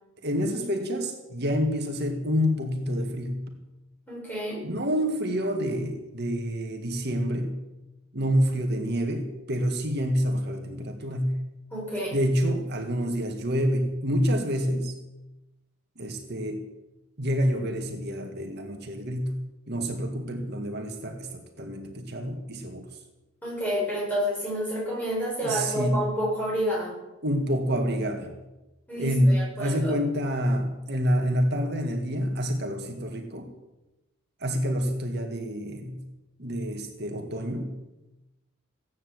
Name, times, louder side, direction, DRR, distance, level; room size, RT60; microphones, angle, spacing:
voice 1, 0.2-3.5 4.6-7.6 8.1-11.5 12.1-14.9 16.0-16.6 17.2-22.9 25.4-26.1 27.2-28.3 29.0-33.5 34.4-36.1 36.4-37.8, equal, 50° right, 3 dB, 2.0 m, -27 dB
voice 2, 4.1-4.6 11.7-12.2 23.4-26.9 28.9-29.9, equal, 10° left, -4 dB, 7.1 m, -29 dB
16.5 x 9.6 x 7.9 m, 1.0 s
head